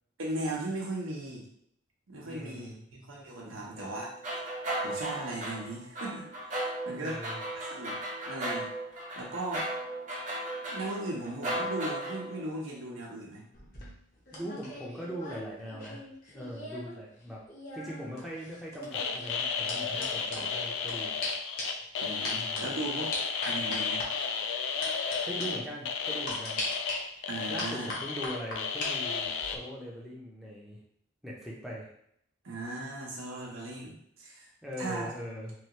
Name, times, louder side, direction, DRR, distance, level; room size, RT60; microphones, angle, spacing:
voice 1, 0.2-1.5 2.1-4.1 4.8-6.3 6.6-7.3 7.5-8.0 8.3-8.7 9.2-9.7 10.7-13.4 22.0-23.1 23.4-24.0 27.3-27.9 32.4-34.5 34.8-35.2, right 2 dB, 85° right, -2 dB, 0.9 m, -37 dB
voice 2, 2.2-2.8 7.0-7.4 14.3-17.4 17.7-21.2 22.3-22.7 25.3-26.6 27.5-30.8 31.2-31.9 34.6-35.5, equal, ahead, -5 dB, 0.6 m, -41 dB
sound 1, 3.8-12.5, right 1 dB, 40° right, 0.8 m, -36 dB
sound 2, 13.5-17.0 17.2-20.9 21.2-21.3 21.6-21.8 22.2-22.6 23.1-24.1 24.8-25.2 25.4-25.5 26.3-26.9 27.6-28.9 29.2-29.6, left 2 dB, 45° left, 0.8 m, -40 dB
sound 3, 18.9-29.6, left 5 dB, 70° left, 0.3 m, -33 dB
3.2 x 2.4 x 2.9 m, 0.71 s
head